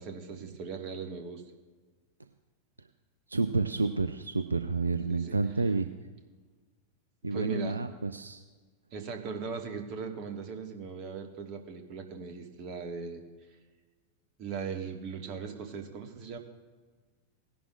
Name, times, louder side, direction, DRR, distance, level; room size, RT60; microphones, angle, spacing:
voice 1, 0.0-1.4 5.1-5.3 7.3-7.8 8.9-13.2 14.4-16.4, right 5 dB, 40° right, 4 dB, 1.6 m, -39 dB
voice 2, 3.3-5.9 7.2-8.4, right 3 dB, 80° right, 9 dB, 0.4 m, -29 dB
18.5 x 11.0 x 2.4 m, 1.4 s
figure-of-eight pair, 90°, 0 cm